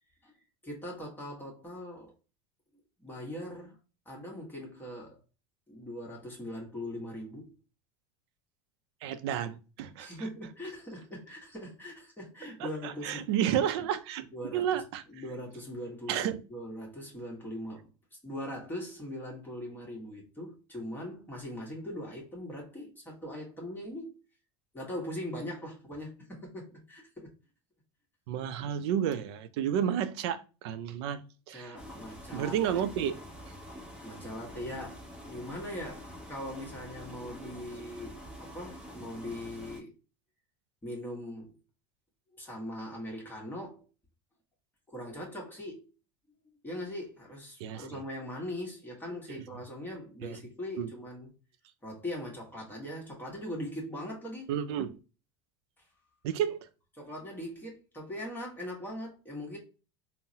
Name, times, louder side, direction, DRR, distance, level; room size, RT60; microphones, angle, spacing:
voice 1, 0.6-2.1 3.0-3.8 4.0-5.2 5.7-7.5 10.0-13.5 14.3-14.6 15.1-17.9 18.2-24.1 24.7-27.3 31.5-32.9 34.0-39.9 40.8-41.5 42.3-43.8 44.9-45.9 46.6-51.3 51.8-54.5 55.8-55.9 56.9-59.6, left 1 dB, 15° left, 1.1 m, -41 dB
voice 2, 9.0-10.1 12.6-14.3 14.5-15.0 16.1-16.4 28.3-31.2 31.5-31.8 32.3-33.1 47.6-48.0 49.1-49.4 50.2-50.4 50.8-50.9 54.5-55.0 56.2-56.7, right 9 dB, 75° right, 0.4 m, -31 dB
sound 1, 31.8-39.8, equal, 5° right, 0.9 m, -46 dB
3.8 x 2.0 x 2.7 m
supercardioid pair, 110°, 14 cm